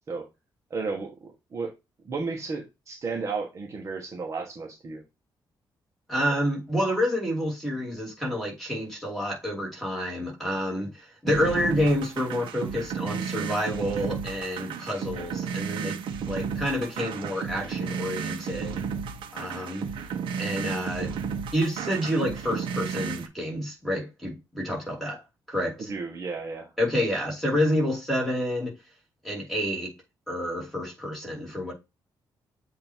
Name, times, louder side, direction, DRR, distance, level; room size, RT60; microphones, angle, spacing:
voice 1, 0.7-1.7 2.0-5.0 25.8-26.7, right 4 dB, 35° right, 1.4 m, -33 dB
voice 2, 6.1-10.9 11.2-16.0 16.2-18.8 19.3-19.8 20.4-21.1 21.5-25.2 25.5-25.9 26.8-28.7 29.2-29.9 30.3-31.7, equal, ahead, 2.8 m, -28 dB
sound 1, 11.3-23.3, right 6 dB, 85° right, 1.1 m, -33 dB
7.8 x 3.1 x 4.5 m
cardioid pair, 165°, 8 cm